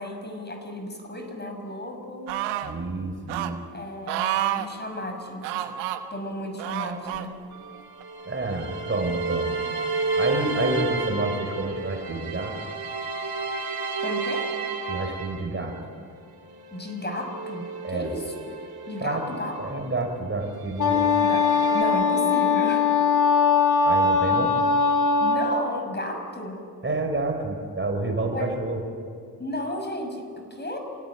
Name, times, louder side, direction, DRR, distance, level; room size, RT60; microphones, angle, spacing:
voice 1, 0.0-2.3 3.7-5.7 6.1-7.4 14.0-14.5 16.7-18.3 18.9-19.5 21.2-21.5 21.7-22.9 25.2-26.6 28.3-28.5 29.4-30.8, left 1 dB, 25° left, 5 dB, 5.9 m, -33 dB
sound 1, 2.3-2.7 3.3-3.5 4.1-4.7 5.4-6.0 6.6-7.3 8.0-8.1, right 12 dB, 90° right, 1.2 m, -28 dB
voice 2, 2.6-3.6 8.2-9.6 10.2-12.5 14.8-15.8 17.8-18.1 19.0-19.2 19.6-21.1 23.8-24.5 26.8-28.8, right 2 dB, 30° right, 4 dB, 5.1 m, -29 dB
sound 2, 7.5-15.8 16.3-20.2 20.6-21.8, right 4 dB, 60° right, 3.2 m, -32 dB
Wind instrument woodwind instrument, 20.8-25.7, left 4 dB, 50° left, 4.0 m, -21 dB
27.5 x 17.0 x 9.6 m, 2.2 s
supercardioid pair, 55°, 42 cm